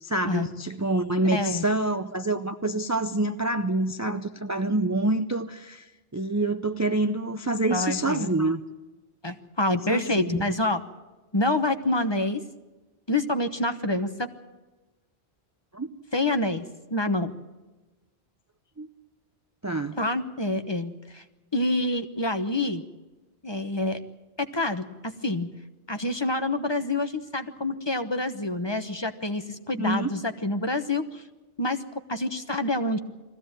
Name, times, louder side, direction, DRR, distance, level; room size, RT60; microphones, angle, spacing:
voice 1, 0.0-8.6 9.9-10.5 15.7-15.9 18.8-18.9 19.6-20.0 29.7-30.1, right 2 dB, 20° right, 8 dB, 0.6 m, -27 dB
voice 2, 1.3-1.6 7.7-8.3 9.2-10.8 11.3-12.4 13.1-14.3 16.1-16.7 16.9-17.3 20.0-21.2 21.5-22.8 23.4-24.0 24.4-25.5 25.9-31.2 31.6-31.8 32.1-33.0, left 2 dB, 25° left, 8 dB, 1.1 m, -27 dB
21.5 x 15.5 x 8.9 m, 1.2 s
omnidirectional pair, 1.1 m